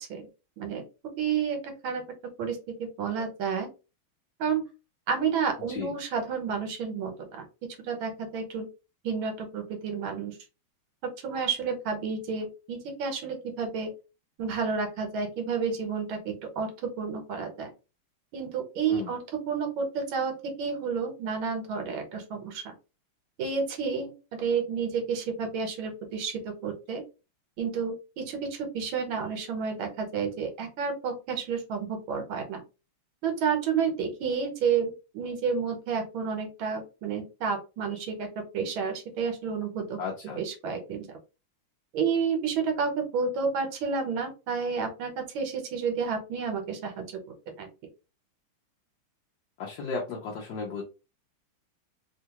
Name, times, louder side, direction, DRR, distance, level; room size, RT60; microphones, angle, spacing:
voice 1, 1.2-2.0 2.4-3.7 4.4-4.6 5.1-7.4 7.9-8.7 9.0-10.3 11.2-13.9 14.4-16.7 17.0-17.7 18.3-22.6 23.4-27.0 27.6-32.6 33.2-38.3 38.5-40.0 40.4-41.2 41.9-47.0 47.6-47.7, right 6 dB, 70° right, 5 dB, 1.6 m, -30 dB
voice 2, 40.0-40.4 49.6-50.8, left 4 dB, 65° left, -1 dB, 1.2 m, -34 dB
3.6 x 2.3 x 2.9 m, 0.29 s
omnidirectional pair, 2.3 m